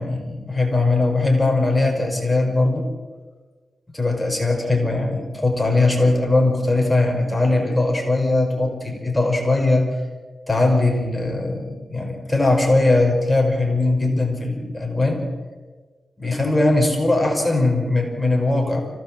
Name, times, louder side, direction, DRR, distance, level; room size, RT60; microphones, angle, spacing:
voice 1, 0.0-2.9 3.9-9.9 10.5-15.3 16.2-18.8, left 2 dB, 15° left, 2 dB, 5.0 m, -20 dB
25.5 x 17.5 x 7.6 m, 1.4 s
cardioid pair, 80°, 0 cm